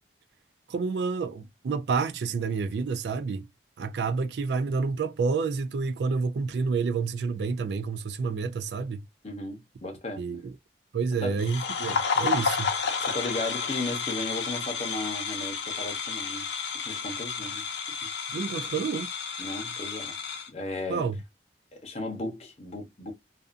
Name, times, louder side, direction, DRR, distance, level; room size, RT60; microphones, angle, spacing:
voice 1, 0.7-3.5 3.8-9.0 10.2-10.5 10.9-12.7 18.3-19.1 20.9-21.2, right 4 dB, 70° right, 0.3 m, -29 dB
voice 2, 9.2-10.3 11.2-11.4 13.0-16.4 16.8-17.6 19.4-20.2 20.5-21.1 21.7-23.1, left 2 dB, 35° left, 0.8 m, -35 dB
sound 1, 11.4-20.5, left 5 dB, 75° left, 0.6 m, -31 dB
2.5 x 2.4 x 2.4 m
head